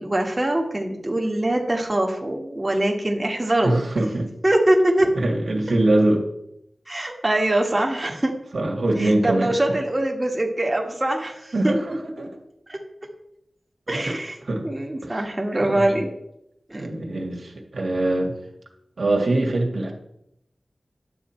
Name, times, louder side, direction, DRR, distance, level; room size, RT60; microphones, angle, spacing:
voice 1, 0.0-3.8 4.4-5.1 6.9-8.3 9.0-11.7 12.7-12.8 13.9-14.4 14.6-16.1 16.7-16.9, right 1 dB, 25° right, 1 dB, 1.5 m, -23 dB
voice 2, 3.6-4.3 5.1-6.2 8.5-9.5 11.5-12.3 13.9-14.1 14.4-14.7 15.0-15.3 15.6-15.9 16.8-18.3 19.0-19.9, right 1 dB, 80° right, 1 dB, 1.7 m, -23 dB
10.5 x 7.4 x 4.4 m, 0.80 s
wide cardioid pair, 85°, 0 cm